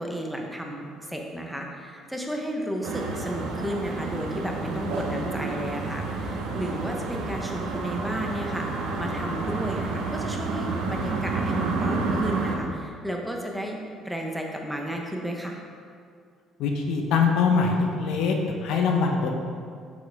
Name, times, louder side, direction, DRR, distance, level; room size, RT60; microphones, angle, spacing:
voice 1, 0.0-8.7 9.0-15.6, equal, ahead, 1 dB, 0.9 m, -33 dB
sound 1, 2.8-12.6, right 3 dB, 85° right, 1.0 m, -29 dB
voice 2, 16.6-18.4 18.6-19.3, left 5 dB, 75° left, 2 dB, 0.9 m, -23 dB
7.5 x 6.3 x 3.5 m, 2.2 s
cardioid pair, 110°, 0 cm